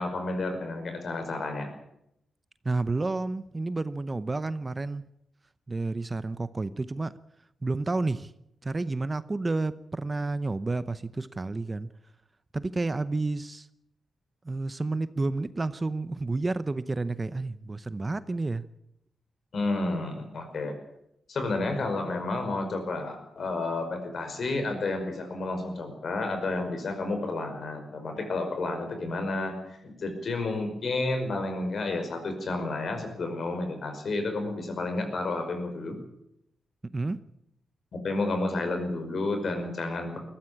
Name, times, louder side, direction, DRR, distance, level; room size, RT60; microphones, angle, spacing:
voice 1, 0.0-1.7 19.5-20.7 21.3-36.0 37.9-40.2, left 2 dB, 55° left, 6 dB, 5.3 m, -31 dB
voice 2, 2.6-5.1 5.7-7.1 7.6-8.3 8.6-11.9 12.5-13.7 14.4-18.6 36.9-37.2, right 3 dB, 25° right, 14 dB, 0.7 m, -30 dB
20.5 x 14.5 x 8.6 m, 0.81 s
cardioid pair, 110°, 0 cm